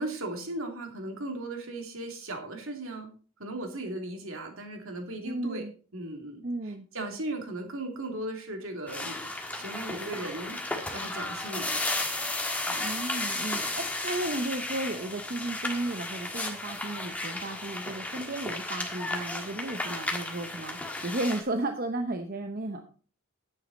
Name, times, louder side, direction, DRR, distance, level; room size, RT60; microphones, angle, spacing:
voice 1, 0.0-3.1 3.4-5.6 5.9-11.9 12.7-12.9, right 2 dB, 65° right, 3 dB, 2.7 m, -37 dB
voice 2, 5.2-5.7 6.4-6.8 12.8-22.8, right 2 dB, 40° right, 6 dB, 0.8 m, -34 dB
sound 1, 8.9-21.4, left 2 dB, 5° left, 1.5 m, -34 dB
10.5 x 9.3 x 4.1 m, 0.39 s
head